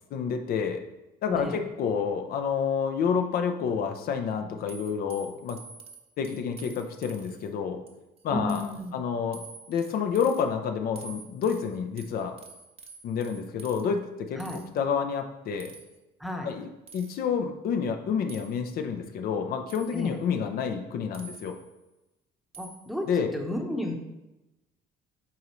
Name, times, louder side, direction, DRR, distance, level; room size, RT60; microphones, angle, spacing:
voice 1, 0.1-0.8 1.2-5.6 6.2-7.8 8.2-8.6 8.9-12.3 13.0-14.4 14.8-15.7 16.4-16.7 16.9-21.6 23.1-23.3, left 6 dB, 65° left, 6 dB, 0.6 m, -29 dB
voice 2, 1.3-1.6 8.3-8.9 14.3-14.6 16.2-16.5 19.9-20.2 22.6-24.0, left 1 dB, ahead, 1 dB, 0.8 m, -32 dB
sound 1, 4.7-7.5 7.9-8.2 8.5-8.9 9.3-10.4 11.0-13.8 14.4-14.6 15.6-16.0 16.9-17.2 18.3-18.5 19.7-20.1 21.1-21.7 22.5-22.9, right 4 dB, 35° right, 0.8 m, -48 dB
8.5 x 3.9 x 3.1 m, 0.99 s
cardioid pair, 110°, 17 cm